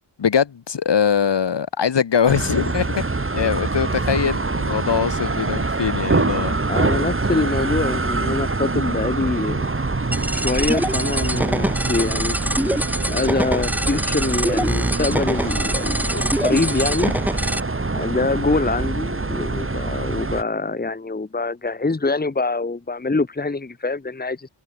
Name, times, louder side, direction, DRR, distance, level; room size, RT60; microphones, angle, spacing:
voice 1, 0.2-3.0 3.3-6.6, left 7 dB, 65° left, 4.1 m, -22 dB
sound 1, 2.3-20.4, right 3 dB, 25° right, 5.0 m, -25 dB
voice 2, 6.7-9.7 10.3-17.1 17.9-24.5, left 3 dB, 20° left, 1.8 m, -24 dB
sound 2, 10.1-17.6, equal, 5° right, 2.9 m, -24 dB
cardioid pair, 75°, 45 cm